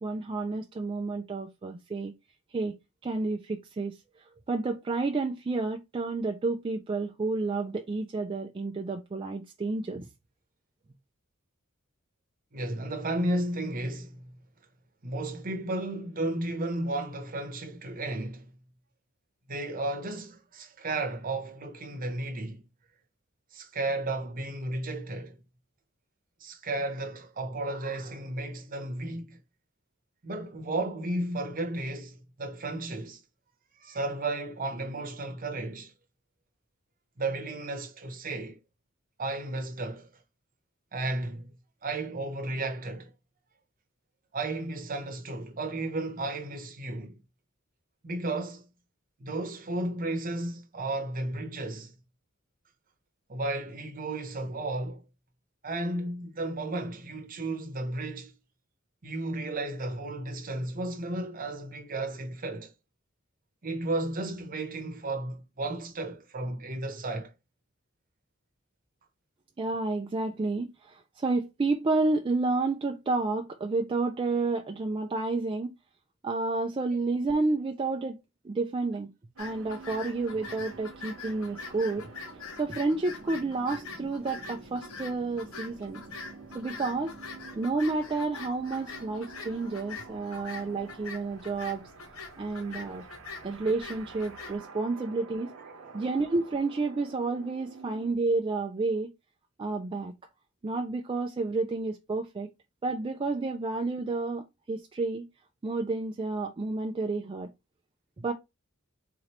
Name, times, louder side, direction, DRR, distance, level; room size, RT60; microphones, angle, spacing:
voice 1, 0.0-2.1 2.5-2.8 3.0-10.1 69.6-75.7 76.2-78.2 78.4-79.1 79.4-82.1 82.6-86.0 86.5-87.1 87.6-91.8 92.4-93.0 93.4-95.5 95.9-99.1 99.6-100.1 100.6-102.5 102.8-105.3 105.6-107.5 108.2-108.3, right 3 dB, 25° right, 0.3 m, -30 dB
voice 2, 12.5-14.3 15.0-18.5 19.5-22.6 23.5-25.4 26.4-29.4 30.2-33.2 33.8-35.9 37.2-38.6 39.2-40.1 40.9-41.5 41.8-43.1 44.3-47.2 48.0-48.6 49.2-51.9 53.3-55.0 55.6-58.3 59.0-62.7 63.6-67.3 95.8-96.0, right 2 dB, 40° right, 0.9 m, -33 dB
sound 1, 79.4-94.6, left 5 dB, 85° left, 0.9 m, -44 dB
sound 2, 79.4-98.1, right 4 dB, 75° right, 0.8 m, -49 dB
3.8 x 3.1 x 2.9 m
head